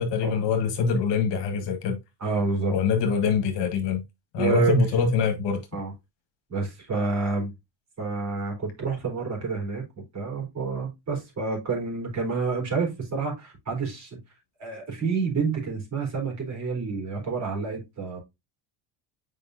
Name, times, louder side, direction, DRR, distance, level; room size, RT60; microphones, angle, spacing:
voice 1, 0.0-2.0 2.7-4.0 4.3-5.6, left 5 dB, 60° left, 1.7 m, -24 dB
voice 2, 2.2-2.7 4.4-4.7 5.7-5.9 6.5-7.5 8.0-9.8 10.1-14.2 14.6-18.2, right 4 dB, 35° right, 3.8 m, -28 dB
7.4 x 5.0 x 2.7 m
cardioid pair, 130°, 48 cm